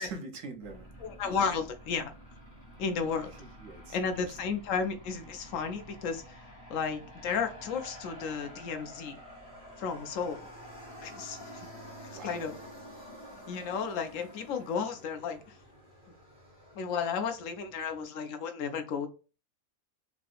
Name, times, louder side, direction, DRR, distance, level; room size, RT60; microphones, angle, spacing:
voice 1, 0.0-1.6 3.4-4.5 12.1-12.5, right 3 dB, 65° right, 4 dB, 1.0 m, -45 dB
Aircraft, 0.6-18.0, equal, 20° left, 1.5 m, -49 dB
voice 2, 1.0-2.1 2.8-3.3 3.9-9.2 9.8-10.4 11.0-11.7 12.2-12.5 13.5-15.6 16.7-19.1, left 6 dB, 70° left, 7 dB, 0.9 m, -33 dB
3.2 x 2.7 x 2.4 m, 0.33 s
omnidirectional pair, 1.5 m